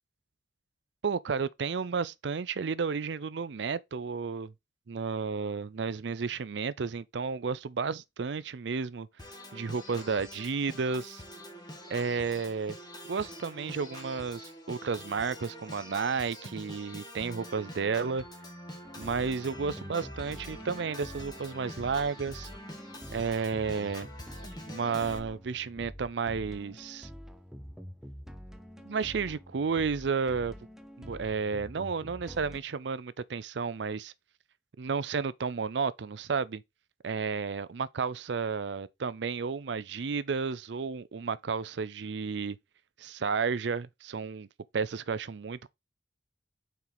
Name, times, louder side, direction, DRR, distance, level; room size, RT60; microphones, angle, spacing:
voice 1, 1.0-4.5 4.9-9.1 9.5-11.2 11.9-12.8 13.0-18.2 19.0-22.5 23.1-24.1 24.7-27.1 28.8-30.5 31.0-34.1 34.8-36.6 37.0-42.6 43.0-44.5 44.7-45.7, right 5 dB, 70° right, 0.5 m, -32 dB
Organ, 9.2-25.2, left 1 dB, 25° left, 1.6 m, -45 dB
sound 1, 18.8-32.6, equal, 5° right, 0.6 m, -46 dB
5.8 x 4.5 x 3.9 m
head